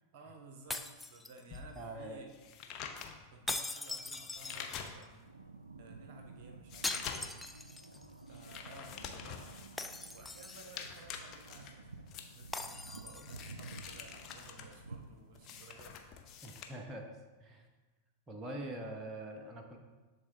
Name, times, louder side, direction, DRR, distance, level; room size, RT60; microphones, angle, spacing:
voice 1, 0.1-2.3 3.3-5.3 5.8-7.3 8.3-9.6 10.0-12.1 12.3-16.0, right 3 dB, 50° right, 4 dB, 0.7 m, -55 dB
sound 1, 0.7-1.8 3.5-5.0 6.8-8.0 8.4-8.5 9.8-10.9 12.5-13.5, left 2 dB, 5° left, 0.3 m, -41 dB
sound 2, 1.5-5.3 5.8-16.6, left 7 dB, 35° left, 0.7 m, -47 dB
voice 2, 1.8-2.2 16.4-17.1 17.4-17.7 18.3-19.8, right 1 dB, 20° right, 2 dB, 0.8 m, -43 dB
sound 3, 5.2-16.1, right 3 dB, 80° right, 0.3 m, -52 dB
10.5 x 3.7 x 2.7 m, 1.3 s
figure-of-eight pair, 90°, 0 cm